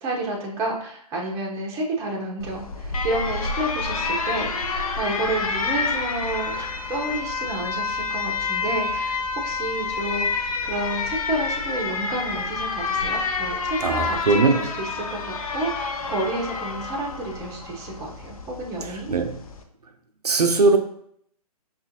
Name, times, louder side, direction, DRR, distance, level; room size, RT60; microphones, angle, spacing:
voice 1, 0.0-19.1, right 2 dB, 15° right, 0.6 m, -30 dB
Alarm, 2.4-19.6, left 4 dB, 65° left, 0.6 m, -28 dB
voice 2, 13.8-14.6 19.1-19.4 20.2-20.8, right 3 dB, 80° right, 0.6 m, -19 dB
5.3 x 2.4 x 2.7 m
figure-of-eight pair, 135°, 20 cm